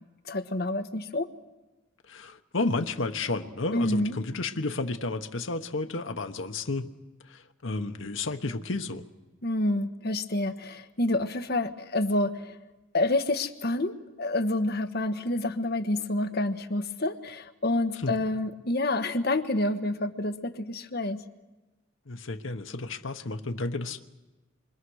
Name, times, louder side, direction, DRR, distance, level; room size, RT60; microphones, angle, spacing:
voice 1, 0.2-1.3 3.7-4.2 9.4-12.6 12.9-21.2, left 2 dB, 50° left, 1.3 m, -28 dB
voice 2, 2.1-6.9 7.3-9.0 18.0-18.1 22.1-24.1, left 3 dB, 75° left, 1.2 m, -32 dB
27.5 x 24.5 x 6.4 m
head